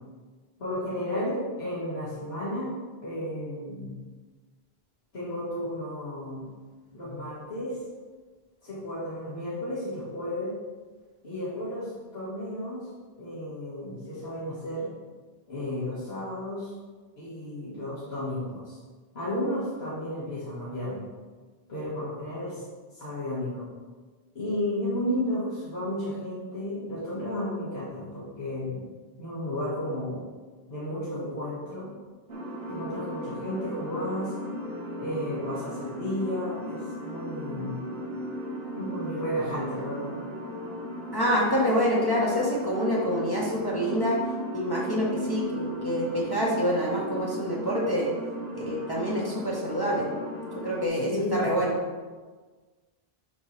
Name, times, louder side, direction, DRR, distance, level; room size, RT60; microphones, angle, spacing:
voice 1, 0.6-2.7 3.0-4.0 5.1-6.5 6.9-7.8 8.6-10.5 11.2-12.9 13.2-14.9 15.5-16.7 17.2-18.8 19.1-21.0 21.7-22.6 22.9-23.7 24.3-28.8 29.2-30.2 30.7-31.9 32.7-34.3 35.0-37.7 38.7-40.1 51.0-51.5, left 1 dB, 80° left, -10 dB, 2.4 m, -33 dB
sound 1, 32.3-50.9, equal, 75° right, 1.5 m, -36 dB
voice 2, 41.1-44.2 44.5-48.1 48.5-50.1 50.6-51.7, equal, 25° left, -5 dB, 1.2 m, -26 dB
11.5 x 4.5 x 3.3 m, 1.4 s
omnidirectional pair, 1.0 m